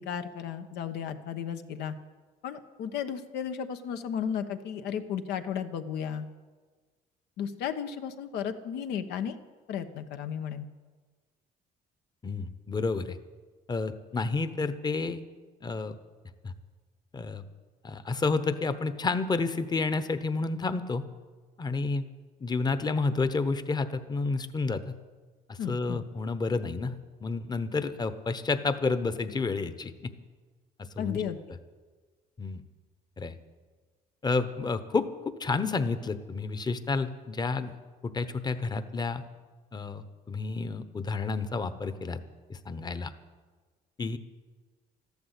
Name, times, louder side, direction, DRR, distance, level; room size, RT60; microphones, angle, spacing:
voice 1, 0.0-1.9 2.4-6.3 7.4-9.4 9.7-10.7 25.6-26.0 31.0-31.4, left 8 dB, 80° left, 8 dB, 1.2 m, -34 dB
voice 2, 12.2-13.2 13.7-15.2 15.6-16.0 16.4-16.5 17.1-17.4 17.8-21.1 21.6-22.0 22.4-25.0 25.5-30.1 30.9-31.2 32.4-32.6 33.2-33.3 34.2-37.7 38.0-39.2 39.7-42.2 42.5-43.1 44.0-44.2, left 3 dB, 25° left, 12 dB, 1.0 m, -30 dB
13.5 x 12.0 x 8.3 m, 1.4 s
cardioid pair, 110°, 17 cm